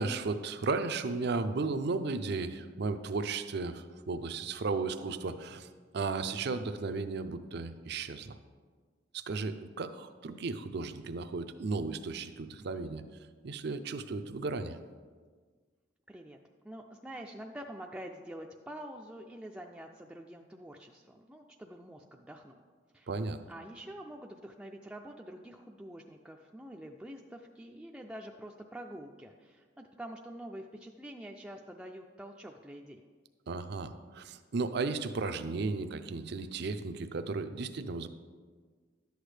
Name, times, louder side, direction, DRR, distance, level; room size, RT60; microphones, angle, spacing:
voice 1, 0.0-5.7 5.9-8.4 9.1-13.0 13.4-14.8 23.1-23.4 33.5-38.1, right 4 dB, 65° right, 10 dB, 0.5 m, -35 dB
voice 2, 16.1-16.4 16.6-22.6 22.9-23.1 23.5-33.0, right 1 dB, 5° right, 1 dB, 0.4 m, -46 dB
11.0 x 8.0 x 3.3 m, 1.5 s
head